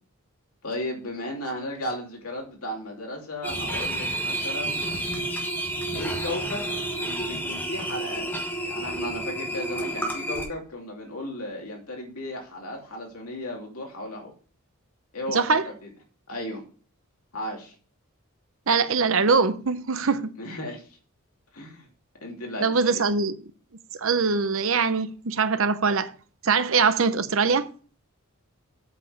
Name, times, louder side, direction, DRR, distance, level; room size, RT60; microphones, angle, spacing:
voice 1, 0.6-4.8 5.9-6.7 7.0-8.3 8.6-14.3 15.1-15.7 16.3-16.6 17.3-17.7 20.4-20.9 21.5-21.9 22.2-23.0, left 1 dB, 80° left, 2.7 m, -35 dB
sound 1, 3.4-10.5, right 1 dB, 10° left, 1.3 m, -30 dB
voice 2, 15.3-15.7 18.7-20.3 22.6-23.4 24.0-26.1 26.4-27.7, right 4 dB, 65° right, 0.7 m, -22 dB
8.2 x 5.3 x 5.8 m
head